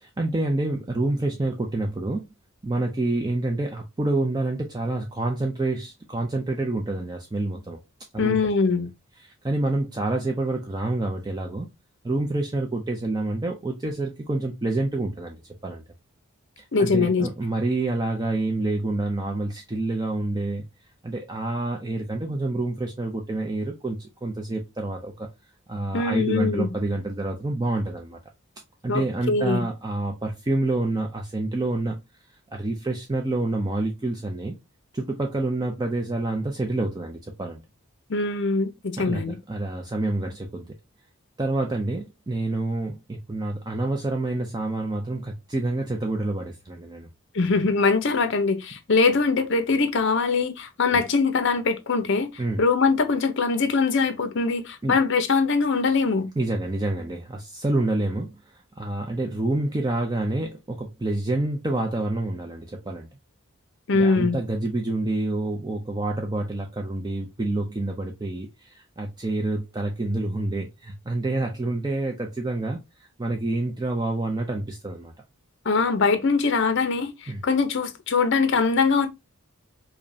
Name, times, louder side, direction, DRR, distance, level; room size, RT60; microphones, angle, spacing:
voice 1, 0.0-2.2 2.6-7.8 8.1-8.4 8.6-8.9 9.2-11.7 12.0-15.8 16.6-20.6 21.0-25.3 25.7-28.2 28.8-32.0 32.5-34.5 34.9-37.6 39.0-40.7 41.4-47.1 50.9-51.0 52.4-52.6 54.8-54.9 56.4-63.1 63.9-75.1 77.3-77.4, right 2 dB, 20° right, 0.4 m, -28 dB
voice 2, 8.2-8.9 16.7-17.3 25.9-26.7 28.9-29.6 38.1-39.4 47.3-52.3 52.6-56.3 63.9-64.4 75.6-79.1, left 4 dB, 55° left, 0.6 m, -22 dB
5.1 x 2.2 x 2.6 m
head